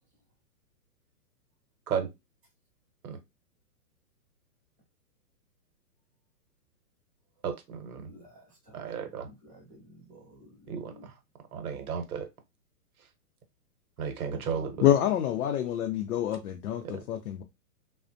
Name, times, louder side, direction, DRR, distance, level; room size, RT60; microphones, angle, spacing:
voice 1, 7.4-8.1 8.7-9.3 10.7-10.9 11.5-12.3 14.0-14.9, right 7 dB, 70° right, 0.9 m, -33 dB
voice 2, 8.1-8.4 8.7-8.8 9.4-11.1 14.3-15.2, equal, 5° right, 0.5 m, -50 dB
voice 3, 14.8-17.4, left 11 dB, 70° left, 0.5 m, -27 dB
3.2 x 2.1 x 2.5 m
hypercardioid pair, 160°, 47 cm